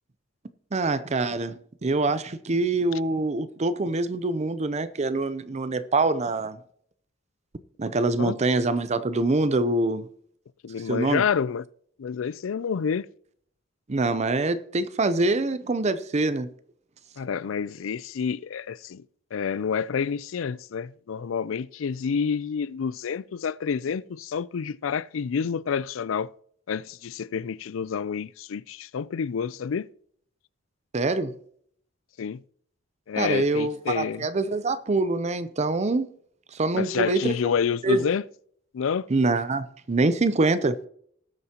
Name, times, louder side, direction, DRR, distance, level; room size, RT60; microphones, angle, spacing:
voice 1, 0.7-6.6 7.8-10.1 10.9-11.2 13.9-16.5 30.9-31.4 33.2-36.1 36.5-37.4 37.8-38.0 39.1-40.8, right 3 dB, 35° right, 0.6 m, -25 dB
voice 2, 10.6-11.6 12.0-13.1 17.2-19.0 19.3-26.3 26.7-29.9 32.2-32.4 33.1-34.2 36.7-38.2 38.7-39.1, left 6 dB, 85° left, 0.4 m, -28 dB
19.0 x 7.8 x 2.9 m
head